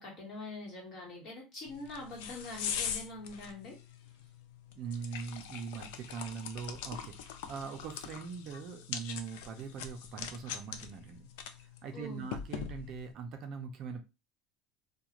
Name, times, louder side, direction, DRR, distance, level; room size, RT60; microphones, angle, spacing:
voice 1, 0.0-3.8 11.9-12.3, left 2 dB, 40° left, -2 dB, 1.3 m, -44 dB
sound 1, 1.7-13.1, left 8 dB, 80° left, 0.4 m, -42 dB
voice 2, 4.7-11.3 11.6-14.0, right 6 dB, 45° right, 5 dB, 0.4 m, -42 dB
2.4 x 2.2 x 2.8 m, 0.27 s
cardioid pair, 150°, 0 cm